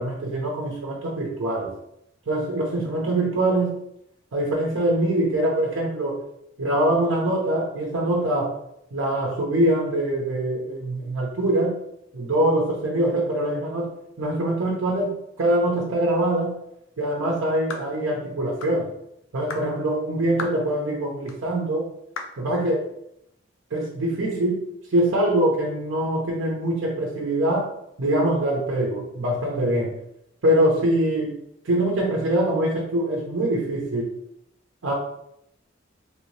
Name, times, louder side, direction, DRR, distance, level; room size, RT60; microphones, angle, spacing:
voice 1, 0.0-1.7 2.3-3.8 4.3-6.2 6.6-8.5 8.9-11.8 12.1-13.9 14.2-16.6 17.0-18.9 19.3-21.9 22.4-22.9 23.7-24.6 24.9-27.7 28.0-29.9 30.4-31.4 31.6-34.1 34.8-34.9, right 1 dB, 80° right, -2 dB, 0.6 m, -23 dB
sound 1, 17.7-17.9 18.6-18.8 19.5-19.7 20.4-20.6 21.3-21.4 22.2-22.4, left 4 dB, 85° left, 0.5 m, -34 dB
3.2 x 2.7 x 3.1 m, 0.77 s
head